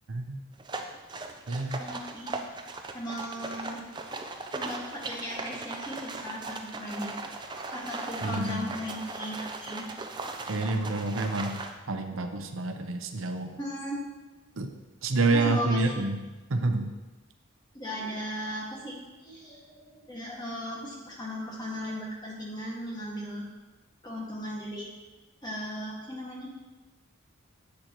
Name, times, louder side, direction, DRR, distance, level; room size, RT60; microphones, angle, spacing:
voice 1, 0.1-0.4 1.5-1.8 8.2-8.7 10.5-11.6 11.9-13.5 14.6-14.7 15.0-16.2 16.5-16.9, right 3 dB, 80° right, 6 dB, 0.7 m, -28 dB
sound 1, 0.6-11.7, right 3 dB, 20° right, 0.5 m, -38 dB
voice 2, 1.8-2.3 2.9-3.8 4.2-7.1 7.6-9.8 13.6-14.0 15.3-15.9 17.7-19.0 19.2-23.5 24.0-24.9 25.4-26.5, equal, 20° left, -4 dB, 1.8 m, -37 dB
10.5 x 7.8 x 3.0 m, 1.2 s
head